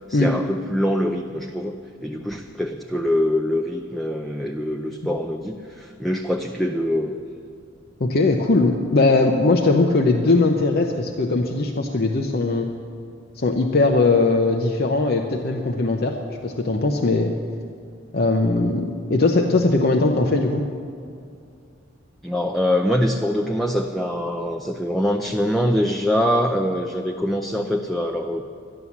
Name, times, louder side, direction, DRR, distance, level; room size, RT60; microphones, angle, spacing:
voice 1, 0.1-1.7 2.0-7.2 22.2-28.5, equal, ahead, 2 dB, 0.5 m, -24 dB
voice 2, 8.0-12.7 13.4-16.2 16.4-17.3 18.1-20.7, left 3 dB, 50° left, 2 dB, 0.8 m, -20 dB
12.5 x 11.0 x 7.2 m, 2.4 s
head